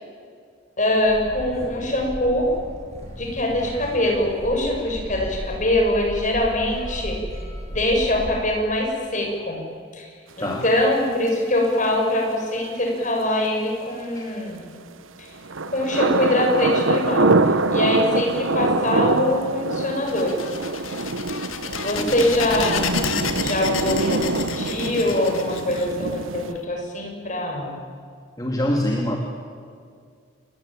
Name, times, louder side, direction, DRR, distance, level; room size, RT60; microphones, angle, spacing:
voice 1, 0.8-2.5 3.2-7.2 7.7-9.6 9.9-10.1 10.4-14.6 15.2-15.3 15.7-17.3 17.7-20.4 21.8-23.0 23.4-27.8, left 1 dB, 40° left, 1 dB, 7.0 m, -23 dB
sound 1, 0.9-8.4, equal, 35° right, 7.9 m, -35 dB
sound 2, 15.4-26.5, right 3 dB, 80° right, 1.1 m, -24 dB
sound 3, 20.1-26.6, left 6 dB, 90° left, 2.4 m, -31 dB
voice 2, 21.9-22.3 28.4-29.2, left 1 dB, 20° left, 0 dB, 2.5 m, -25 dB
29.0 x 22.0 x 8.8 m, 2.2 s
head